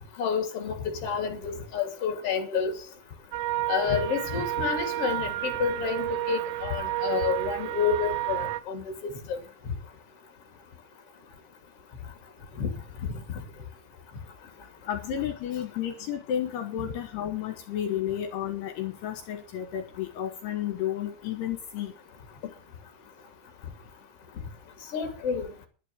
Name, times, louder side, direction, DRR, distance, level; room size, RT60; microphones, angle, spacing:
voice 1, 0.2-2.7 3.7-9.4 12.6-12.7 13.0-13.1 16.8-16.9 24.9-25.5, left 6 dB, 35° left, 3.4 m, -29 dB
sound 1, 3.3-8.6, right 16 dB, 85° right, 3.2 m, -31 dB
voice 2, 14.9-21.9, left 10 dB, 75° left, 3.2 m, -32 dB
11.5 x 9.5 x 8.0 m
omnidirectional pair, 5.0 m